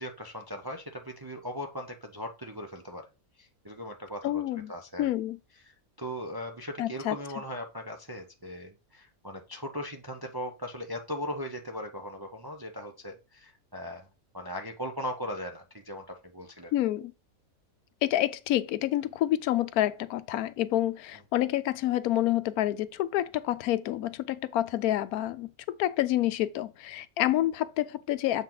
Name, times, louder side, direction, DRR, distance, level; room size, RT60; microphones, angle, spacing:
voice 1, 0.0-3.1 3.4-4.4 4.7-5.1 5.6-14.1 14.3-16.7, equal, 30° right, 0.4 m, -38 dB
voice 2, 4.2-4.7 5.0-5.4 6.8-7.2 16.7-17.1 18.0-25.5 25.8-28.4, left 13 dB, 85° left, 1.1 m, -28 dB
7.3 x 4.4 x 3.9 m
omnidirectional pair, 1.5 m